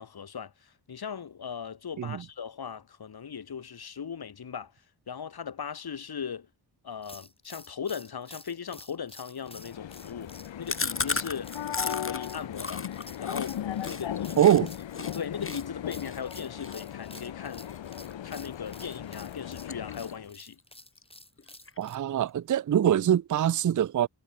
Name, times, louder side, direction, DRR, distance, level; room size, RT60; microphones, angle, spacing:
voice 1, 0.0-4.7 5.1-6.5 6.8-12.8 13.2-13.6 13.8-14.4 15.1-17.7 18.2-20.6, left 7 dB, 60° left, 1.9 m, -38 dB
sound 1, 7.0-22.0, left 1 dB, 15° left, 7.4 m, -50 dB
sound 2, 9.4-20.3, left 10 dB, 85° left, 1.1 m, -37 dB
Chewing mastication, 10.7-14.6 14.9-15.1 15.4-18.4 18.8-19.1 19.4-20.3 20.6-20.7 21.0-21.1 21.4-22.0, left 3 dB, 30° left, 2.3 m, -35 dB
voice 2, 14.4-14.7 21.8-24.1, right 10 dB, 45° right, 0.5 m, -23 dB
wide cardioid pair, 85°, 44 cm